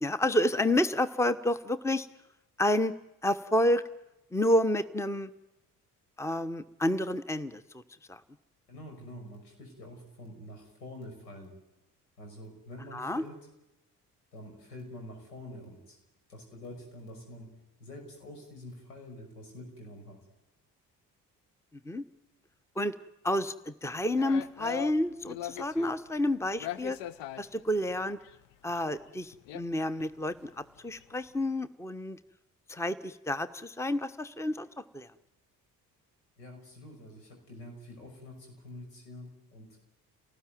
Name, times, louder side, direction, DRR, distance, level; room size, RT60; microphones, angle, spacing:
voice 1, 0.0-2.1 2.6-2.9 3.2-3.8 4.3-5.3 6.2-7.6 8.1-8.2 12.9-13.2 21.8-22.0 22.8-22.9 23.2-27.0 27.4-28.2 28.6-30.5 30.8-32.2 32.7-35.1, left 1 dB, 5° left, 15 dB, 1.2 m, -29 dB
voice 2, 8.7-11.6 12.2-13.4 14.3-16.0 16.3-20.2 36.4-39.8, left 1 dB, 80° left, 2 dB, 6.1 m, -47 dB
sound 1, 24.2-26.1 26.6-28.4 28.7-28.8 29.2-29.6 30.0-30.1 30.4-30.6 30.9-31.0, left 13 dB, 65° left, 1.0 m, -40 dB
29.5 x 19.0 x 9.3 m, 0.94 s
figure-of-eight pair, 45°, 47 cm